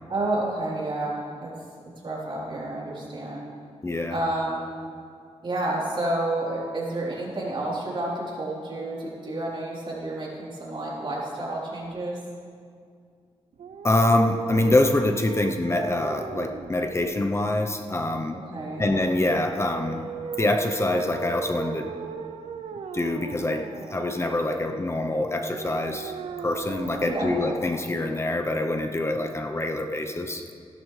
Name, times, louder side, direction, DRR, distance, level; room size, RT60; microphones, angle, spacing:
voice 1, 0.1-1.5 2.0-3.4 4.1-4.6 5.4-12.2 18.5-18.9 27.1-27.6, right 1 dB, 50° right, -5 dB, 3.6 m, -30 dB
voice 2, 3.8-4.2 13.8-18.4 18.8-20.0 20.4-21.9 22.9-26.1 26.4-30.4, left 2 dB, 25° left, 5 dB, 0.8 m, -25 dB
sound 1, 13.5-28.5, right 7 dB, 80° right, 0.6 m, -38 dB
16.5 x 12.0 x 3.3 m, 2.2 s
cardioid pair, 90°, 11 cm